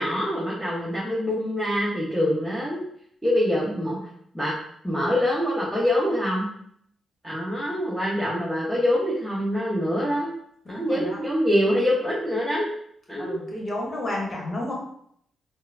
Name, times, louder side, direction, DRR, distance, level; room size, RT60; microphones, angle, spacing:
voice 1, 0.0-2.8 3.2-4.0 4.3-4.5 4.8-6.5 7.2-10.3 10.7-12.7 13.1-13.5, equal, ahead, -7 dB, 1.0 m, -25 dB
voice 2, 10.6-11.2 13.2-14.7, left 1 dB, 40° left, -2 dB, 1.2 m, -31 dB
3.6 x 2.1 x 2.6 m, 0.68 s
supercardioid pair, 55°, 0 cm